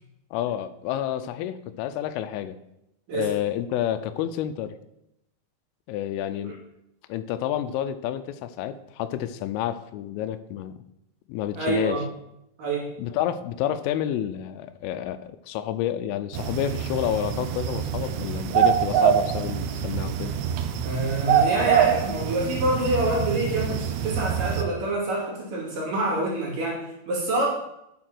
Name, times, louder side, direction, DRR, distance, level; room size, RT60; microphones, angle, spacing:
voice 1, 0.3-2.6 3.1-4.7 5.9-6.6 7.1-10.8 11.3-12.0 13.0-20.3, left 11 dB, 85° left, 12 dB, 3.2 m, -29 dB
voice 2, 11.5-12.0 12.6-12.9 20.8-27.5, right 1 dB, 50° right, -4 dB, 3.7 m, -27 dB
sound 1, 16.3-24.7, right 9 dB, 80° right, 2.8 m, -25 dB
10.5 x 6.5 x 6.2 m, 0.84 s
omnidirectional pair, 5.7 m